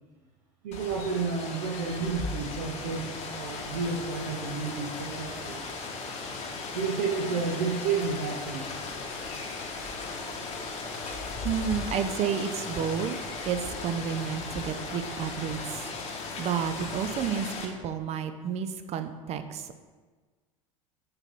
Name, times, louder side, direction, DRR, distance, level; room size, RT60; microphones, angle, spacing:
voice 1, 0.6-5.7 6.7-8.7, right 5 dB, 75° right, 0 dB, 0.8 m, -31 dB
Rain, 0.7-17.7, left 3 dB, 40° left, 1.2 m, -37 dB
voice 2, 11.4-13.2 13.5-19.7, right 7 dB, 40° right, 9 dB, 0.5 m, -31 dB
6.7 x 3.0 x 5.4 m, 1.4 s
hypercardioid pair, 85°, 17 cm